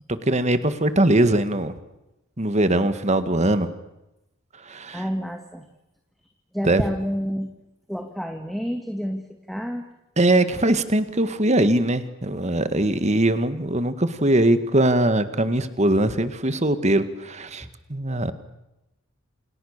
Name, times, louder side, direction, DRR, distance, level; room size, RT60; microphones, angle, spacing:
voice 1, 0.3-1.7 2.4-3.7 4.7-5.0 6.6-6.8 10.2-18.3, right 1 dB, 35° right, 11 dB, 1.9 m, -21 dB
voice 2, 4.9-5.7 6.5-7.5 7.9-9.8 17.6-17.7, equal, ahead, 4 dB, 2.1 m, -29 dB
29.5 x 28.0 x 6.8 m, 0.93 s
head